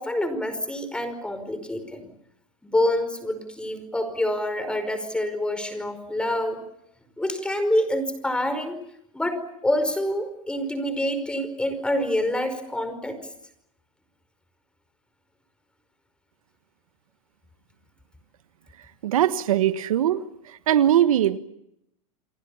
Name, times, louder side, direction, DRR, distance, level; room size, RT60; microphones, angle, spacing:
voice 1, 0.0-2.1 2.6-6.6 7.2-8.8 9.1-13.2, left 1 dB, 5° left, 11 dB, 5.1 m, -26 dB
voice 2, 19.0-20.2 20.7-21.4, right 11 dB, 80° right, 12 dB, 1.4 m, -20 dB
30.0 x 23.0 x 7.2 m, 0.79 s
hypercardioid pair, 120°, 18 cm